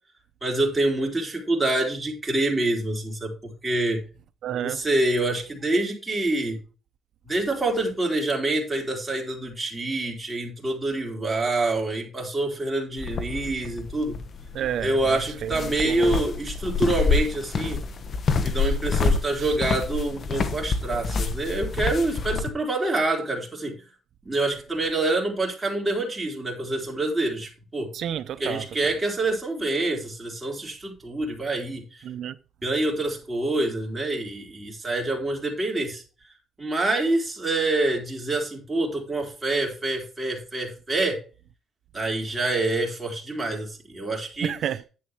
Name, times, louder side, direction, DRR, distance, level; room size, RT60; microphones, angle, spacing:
voice 1, 0.4-4.0 4.6-6.6 7.2-14.2 14.8-17.8 18.4-23.7 24.2-27.9 28.4-31.8 32.6-36.0 36.6-41.2 41.9-44.5, right 2 dB, 20° right, 4.2 m, -26 dB
voice 2, 4.4-4.8 14.5-16.2 18.6-18.7 19.4-19.5 27.9-28.7 32.0-32.4 44.4-44.8, right 10 dB, 70° right, 0.6 m, -31 dB
sound 1, 13.0-22.5, left 4 dB, 50° left, 1.2 m, -27 dB
10.5 x 8.6 x 3.2 m
cardioid pair, 90°, 0 cm